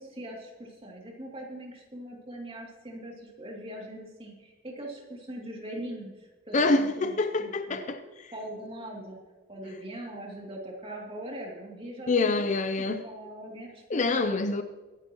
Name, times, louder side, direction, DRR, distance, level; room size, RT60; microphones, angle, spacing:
voice 1, 0.0-6.1 6.5-7.8 8.3-9.2 9.5-12.5 12.8-14.5, right 1 dB, 25° right, 2.5 m, -41 dB
voice 2, 6.5-8.3 12.1-13.0 13.9-14.6, left 3 dB, 35° left, 0.5 m, -26 dB
23.5 x 10.5 x 3.0 m
head